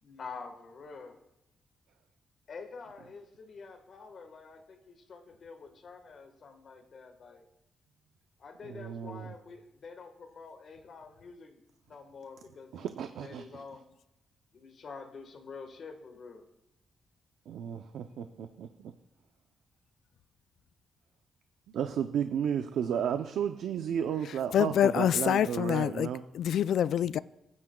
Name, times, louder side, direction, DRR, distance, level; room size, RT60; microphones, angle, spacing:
voice 1, 0.0-1.2 2.5-7.4 8.4-11.6 11.9-13.9 14.5-16.5, left 4 dB, 50° left, 1.4 m, -47 dB
voice 2, 8.6-9.3 12.7-13.6 17.5-18.9 21.7-26.2, right 8 dB, 90° right, 0.5 m, -33 dB
voice 3, 24.5-26.1 26.3-27.2, left 10 dB, 75° left, 0.3 m, -26 dB
19.5 x 9.7 x 2.3 m
cardioid pair, 140°, 0 cm